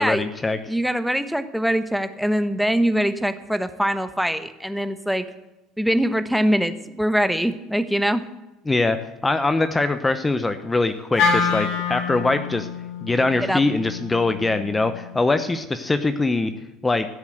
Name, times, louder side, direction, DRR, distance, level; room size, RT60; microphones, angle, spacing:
voice 1, 0.0-0.6 8.7-9.0 9.2-12.7 13.0-16.5 16.8-17.1, left 3 dB, 15° left, 10 dB, 0.9 m, -22 dB
voice 2, 0.7-5.3 5.8-8.2 13.4-13.6, equal, ahead, 10 dB, 1.1 m, -23 dB
Wind instrument woodwind instrument, 11.2-15.4, left 5 dB, 60° left, 2.5 m, -27 dB
15.5 x 7.3 x 8.0 m, 1.0 s
hypercardioid pair, 65°, 0 cm